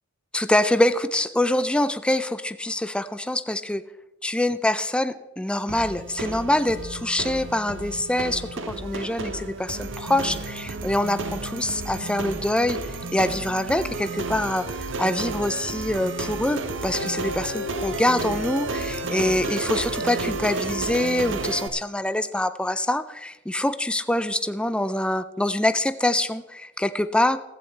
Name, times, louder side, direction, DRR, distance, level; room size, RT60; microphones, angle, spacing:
voice 1, 0.3-3.8 4.2-12.8 13.1-27.4, left 1 dB, 5° left, 11 dB, 0.4 m, -25 dB
sound 1, 5.7-21.7, right 3 dB, 85° right, 1.0 m, -32 dB
sound 2, 16.6-20.9, left 4 dB, 65° left, 2.5 m, -38 dB
15.0 x 14.0 x 3.3 m, 0.94 s
head